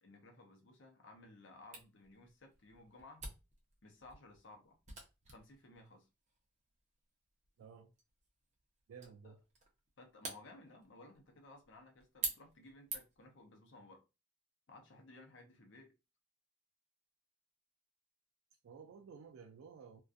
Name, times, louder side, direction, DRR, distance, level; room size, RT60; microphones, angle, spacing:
voice 1, 0.0-3.3 3.8-4.8 5.3-6.1 9.2-9.3 10.0-14.0 14.7-15.9, left 2 dB, 60° left, 0.6 m, -58 dB
Camera, 1.7-13.3, right 4 dB, 35° right, 0.6 m, -49 dB
voice 2, 7.6-7.9 8.9-9.4 18.6-20.0, right 6 dB, 75° right, 0.3 m, -54 dB
2.4 x 2.2 x 2.5 m
head